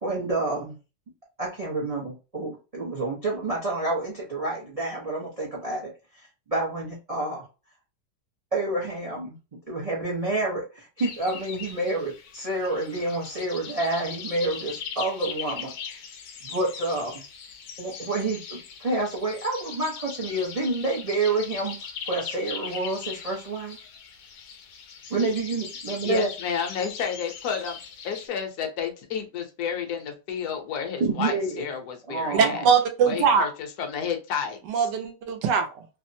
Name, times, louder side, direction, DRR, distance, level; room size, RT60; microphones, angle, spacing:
voice 1, 0.0-0.8 1.4-7.4 8.5-9.4 9.7-15.7 16.4-17.2 17.8-21.8 22.1-23.8 25.1-26.3 31.0-31.7 32.1-32.7, right 2 dB, 50° right, -2 dB, 0.4 m, -28 dB
sound 1, 11.0-28.3, left 6 dB, 85° left, 1.2 m, -40 dB
voice 2, 26.0-27.8 28.0-32.6 33.0-33.5 33.8-34.6, left 7 dB, 65° left, 4 dB, 1.2 m, -31 dB
voice 3, 32.3-33.5 34.7-35.9, right 6 dB, 80° right, 6 dB, 1.2 m, -22 dB
3.3 x 2.0 x 2.6 m, 0.31 s
omnidirectional pair, 1.9 m